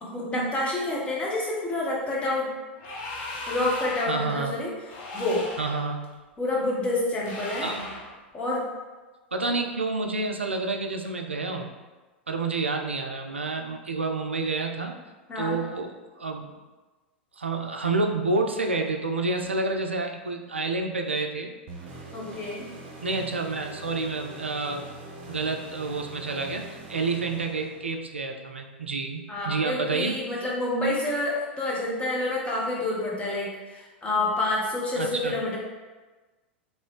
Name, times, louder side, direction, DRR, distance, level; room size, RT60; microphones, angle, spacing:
voice 1, 0.0-2.5 3.5-4.7 5.1-5.5 6.4-7.7 8.3-8.6 15.3-15.6 22.1-22.7 29.3-35.6, left 2 dB, 20° left, -4 dB, 0.9 m, -28 dB
Voice elephant, 2.8-4.2 4.8-5.9 7.2-8.1, left 2 dB, 40° left, 0.7 m, -36 dB
voice 2, 4.1-4.5 5.6-6.0 7.6-7.9 9.3-11.7 12.3-15.0 15.4-15.9 16.2-16.5 17.4-21.5 23.0-24.9 25.3-30.1 35.0-35.3, right 3 dB, 80° right, 4 dB, 0.3 m, -29 dB
sound 1, 21.7-28.1, right 2 dB, 50° right, 0.8 m, -43 dB
2.9 x 2.7 x 3.1 m, 1.2 s
figure-of-eight pair, 90°, 6 cm